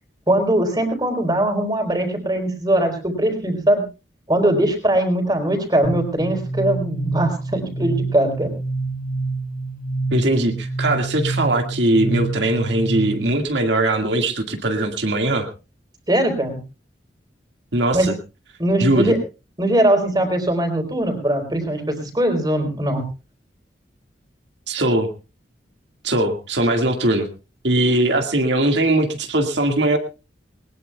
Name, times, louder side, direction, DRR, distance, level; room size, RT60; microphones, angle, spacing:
voice 1, 0.3-3.8 4.3-8.5 16.1-16.6 17.9-18.1 18.6-19.2 19.6-23.1, right 1 dB, 20° right, 5 dB, 3.8 m, -20 dB
sound 1, 5.8-13.4, right 3 dB, 45° left, 5.9 m, -27 dB
voice 2, 10.1-15.5 17.7-18.2 18.8-19.2 24.7-25.1 26.0-27.3 27.6-30.0, right 1 dB, 75° right, 4 dB, 2.0 m, -20 dB
20.5 x 20.0 x 2.3 m, 0.31 s
head